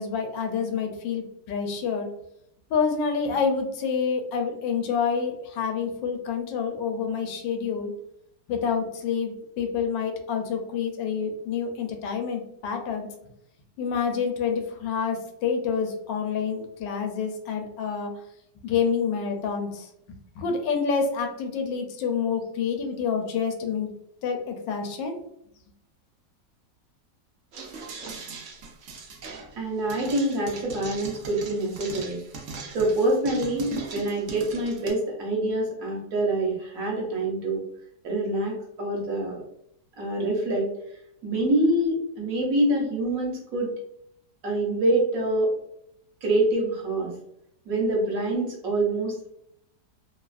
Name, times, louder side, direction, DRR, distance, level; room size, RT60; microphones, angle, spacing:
voice 1, 0.0-2.1 2.7-7.9 8.5-13.1 13.8-18.2 18.6-19.9 20.4-23.9 24.2-25.2, left 6 dB, 85° left, 4 dB, 1.3 m, -28 dB
sound 1, 27.5-34.9, right 4 dB, 80° right, 0.6 m, -39 dB
voice 2, 29.6-32.2 32.7-37.6 38.0-39.4 40.0-40.7 41.2-43.7 44.4-45.5 46.2-47.1 47.7-49.3, right 1 dB, 60° right, -3 dB, 1.1 m, -25 dB
3.1 x 2.3 x 2.3 m, 0.76 s
omnidirectional pair, 1.9 m